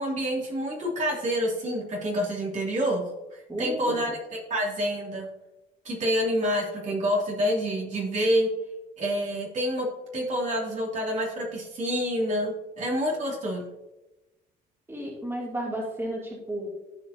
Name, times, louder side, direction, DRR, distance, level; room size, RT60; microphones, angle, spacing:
voice 1, 0.0-5.3 5.8-8.5 9.0-13.6, equal, 45° right, -3 dB, 2.9 m, -28 dB
voice 2, 3.5-4.0 14.9-16.7, right 1 dB, 15° right, -3 dB, 2.8 m, -33 dB
15.0 x 5.0 x 2.8 m, 1.0 s
cardioid pair, 110°, 17 cm